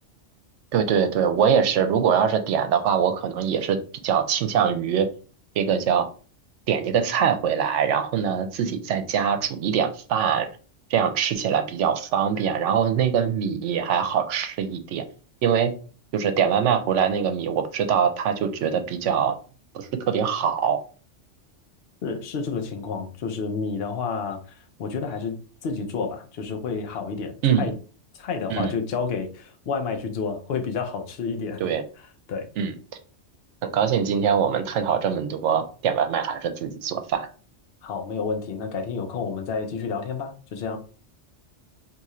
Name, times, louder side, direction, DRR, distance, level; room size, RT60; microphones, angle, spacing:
voice 1, 0.7-3.8 4.0-5.1 5.6-6.1 6.7-10.5 10.9-15.0 15.4-15.7 16.1-19.4 19.7-20.8 27.4-27.7 28.5-28.7 31.6-31.8 32.6-32.7 33.7-37.3, right 7 dB, 75° right, 8 dB, 0.9 m, -23 dB
voice 2, 22.0-24.4 24.8-25.3 25.6-27.7 28.1-31.6 32.3-32.5 37.8-40.8, left 5 dB, 60° left, 4 dB, 0.9 m, -30 dB
2.7 x 2.4 x 4.2 m, 0.38 s
omnidirectional pair, 1.2 m